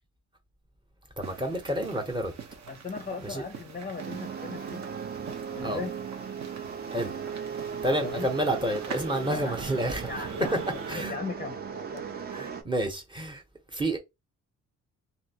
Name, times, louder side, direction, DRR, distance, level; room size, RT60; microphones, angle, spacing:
voice 1, 1.2-2.3 3.2-3.4 5.6-5.8 6.9-7.1 7.8-10.1 10.9-11.1 12.3-13.4 13.7-14.0, right 1 dB, 15° right, 0.9 m, -29 dB
sound 1, 1.2-11.0, right 6 dB, 65° right, 0.9 m, -44 dB
voice 2, 2.7-4.8 5.5-5.9 8.0-8.3 9.2-9.6 10.1-12.0, left 4 dB, 30° left, 0.5 m, -38 dB
sound 2, 4.0-12.6, right 6 dB, 30° right, 0.5 m, -37 dB
2.9 x 2.7 x 2.8 m
cardioid pair, 105°, 30 cm